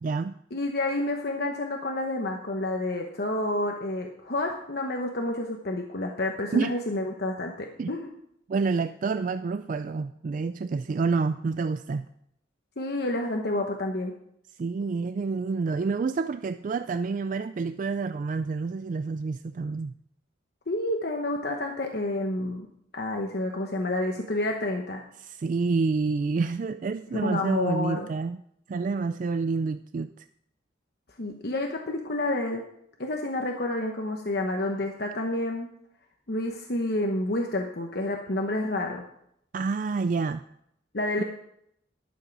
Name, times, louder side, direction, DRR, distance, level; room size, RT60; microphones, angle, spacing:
voice 1, 0.0-0.3 6.5-6.7 7.8-7.9 8.5-12.1 14.6-19.9 25.2-28.4 28.7-30.3 39.5-40.4 41.2-41.3, right 4 dB, 45° right, 0.3 m, -28 dB
voice 2, 0.5-8.1 12.8-14.1 20.7-22.7 22.9-25.0 27.1-28.1 31.2-32.6 33.0-35.7 36.3-39.0 40.9-41.2, left 1 dB, 55° left, 1.0 m, -29 dB
12.0 x 7.3 x 6.0 m
head